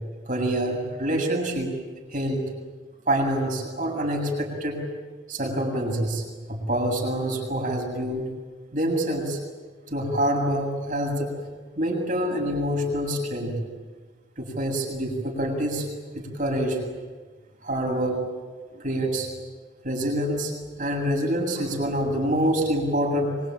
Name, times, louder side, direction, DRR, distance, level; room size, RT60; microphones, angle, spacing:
voice 1, 0.3-1.7 2.1-2.5 3.1-4.9 5.3-6.2 6.5-8.3 8.7-9.4 9.9-11.4 11.8-13.6 14.4-15.9 16.1-16.8 17.6-18.2 18.7-19.3 19.8-20.5 20.8-23.4, right 1 dB, 40° right, 1 dB, 7.4 m, -26 dB
25.0 x 25.0 x 9.2 m, 1.4 s
head